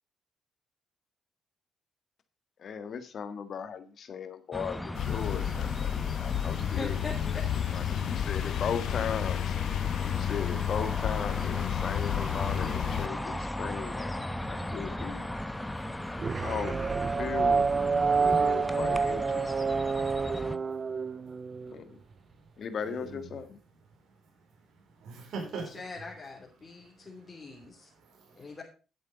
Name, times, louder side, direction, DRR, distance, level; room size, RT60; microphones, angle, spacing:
voice 1, 2.6-7.0 7.7-9.5 10.1-14.2 14.5-15.3 16.4-17.8 18.2-19.7 21.7-22.0 22.6-23.6, left 7 dB, 55° left, 10 dB, 1.6 m, -37 dB
sound 1, 4.5-20.6, left 1 dB, 10° left, 0.9 m, -37 dB
sound 2, 4.9-13.1, left 11 dB, 80° left, 0.5 m, -31 dB
voice 2, 6.6-7.4 25.4-27.9 28.3-28.6, left 3 dB, 30° left, -2 dB, 3.2 m, -43 dB
sound 3, 16.2-21.7, right 5 dB, 35° right, 0.4 m, -28 dB
voice 3, 19.6-20.2 20.6-20.9 21.1-21.3 22.8-23.3 25.0-25.8 28.0-28.4, right 4 dB, 70° right, 1 dB, 4.3 m, -42 dB
10.5 x 8.1 x 5.1 m, 0.34 s
cardioid pair, 90°, 0 cm